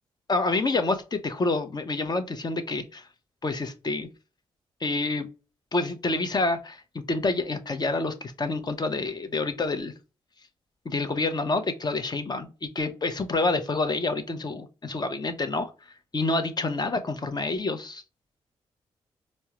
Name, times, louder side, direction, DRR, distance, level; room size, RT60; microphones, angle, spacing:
voice 1, 0.3-3.1 3.4-4.1 4.8-5.3 5.7-9.9 10.8-15.7 16.1-18.0, left 3 dB, 35° left, 0.8 m, -28 dB
4.5 x 2.1 x 2.9 m
hypercardioid pair, 40°, 11 cm